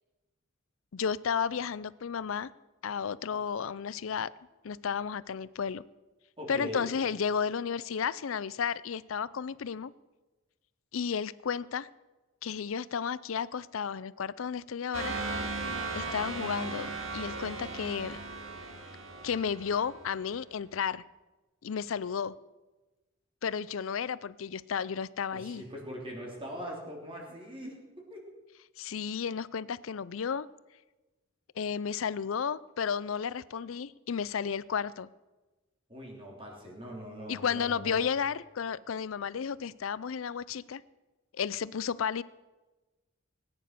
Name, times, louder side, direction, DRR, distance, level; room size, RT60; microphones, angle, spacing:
voice 1, 0.9-2.5 2.8-4.3 4.6-5.8 6.5-9.9 10.9-11.9 12.4-15.2 15.9-18.2 19.2-21.0 21.6-22.3 23.4-25.6 28.8-30.5 31.6-35.1 37.3-40.8 41.4-42.2, left 6 dB, 75° left, 19 dB, 0.5 m, -33 dB
voice 2, 6.4-6.9 25.3-27.7 28.1-28.2 35.9-38.0, equal, 25° right, -2 dB, 3.5 m, -41 dB
sound 1, 14.9-20.3, right 3 dB, 85° right, 2.5 m, -37 dB
18.5 x 9.8 x 6.8 m, 1.2 s
head